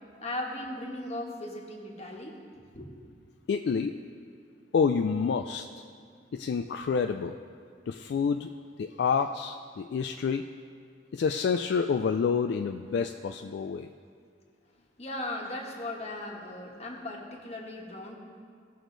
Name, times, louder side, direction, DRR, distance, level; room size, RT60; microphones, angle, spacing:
voice 1, 0.2-2.4 2.7-2.9 15.0-18.2, left 1 dB, 35° left, 0 dB, 1.4 m, -37 dB
voice 2, 3.5-4.0 4.7-5.7 6.3-7.4 7.9-8.5 8.8-10.5 11.1-13.9, left 5 dB, 65° left, 7 dB, 0.3 m, -28 dB
17.5 x 6.3 x 3.9 m, 2.2 s
head